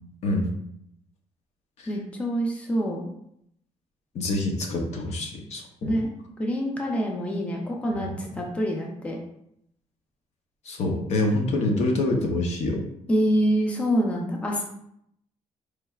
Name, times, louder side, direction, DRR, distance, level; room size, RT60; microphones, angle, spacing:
voice 1, 0.2-0.5 1.8-1.9 4.1-6.0 8.0-8.1 10.6-12.9, left 2 dB, 65° left, 2 dB, 0.7 m, -26 dB
voice 2, 1.9-3.0 5.8-6.1 6.4-9.2 13.1-14.6, equal, 10° left, 0 dB, 0.5 m, -26 dB
4.6 x 3.2 x 2.3 m, 0.73 s
cardioid pair, 180°, 12 cm